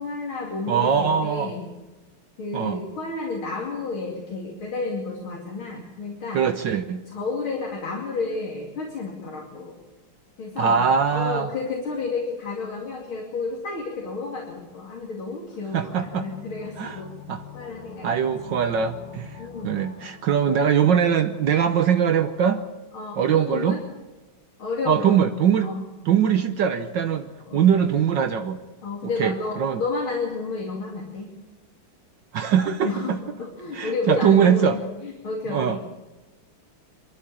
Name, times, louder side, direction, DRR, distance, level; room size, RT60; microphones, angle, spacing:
voice 1, 0.0-1.7 2.4-6.5 7.1-9.8 10.4-10.8 11.1-17.1 17.5-18.1 18.4-18.5 19.4-20.0 22.9-23.8 24.6-25.8 27.5-27.8 28.8-31.3 32.8-35.8, left 3 dB, 80° left, -1 dB, 3.6 m, -31 dB
voice 2, 0.7-1.5 2.5-2.8 6.3-7.0 10.6-11.5 15.7-16.3 16.8-17.0 17.3-17.4 18.0-19.4 19.6-22.6 23.2-23.8 24.8-25.7 26.0-28.6 29.2-29.8 32.3-33.2 33.7-34.8 35.5-35.8, right 8 dB, 65° right, 8 dB, 1.5 m, -22 dB
sound 1, 15.7-21.4 21.7-21.8, left 7 dB, 65° left, 2.8 m, -44 dB
23.5 x 13.5 x 8.7 m, 1.2 s
omnidirectional pair, 2.2 m